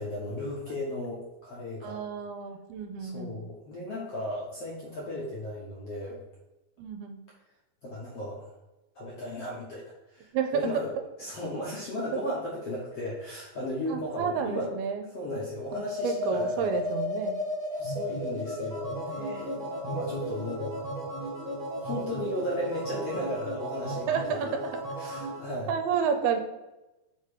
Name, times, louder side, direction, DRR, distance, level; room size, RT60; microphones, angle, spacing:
voice 1, 0.0-2.0 3.0-6.2 7.8-8.5 8.9-10.9 11.2-14.7 15.1-16.7 17.7-20.8 21.8-24.1 25.0-25.7, left 1 dB, 70° left, -5 dB, 1.4 m, -35 dB
voice 2, 1.8-3.4 6.8-7.2 10.3-10.8 12.1-12.2 13.9-15.1 15.7-17.4 24.1-24.8 25.7-26.4, right 7 dB, 85° right, 6 dB, 2.6 m, -30 dB
sound 1, 15.6-25.4, equal, 50° right, 1.0 m, -34 dB
6.7 x 4.2 x 5.0 m, 1.0 s
omnidirectional pair, 4.5 m